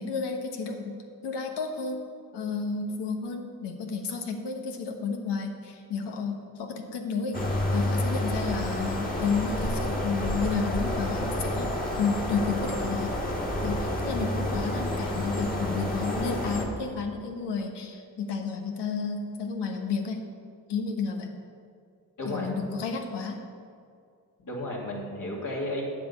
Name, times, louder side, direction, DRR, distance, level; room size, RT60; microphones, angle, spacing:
voice 1, 0.0-2.0 2.3-7.4 7.7-13.1 13.6-20.2 20.7-21.3 22.3-23.4, left 5 dB, 80° left, 4 dB, 1.2 m, -31 dB
sound 1, 7.3-16.7, left 1 dB, 20° left, 2.1 m, -29 dB
voice 2, 22.2-22.5 24.4-25.8, left 1 dB, 50° left, -3 dB, 2.6 m, -33 dB
8.6 x 7.3 x 5.5 m, 2.3 s
supercardioid pair, 55°, 41 cm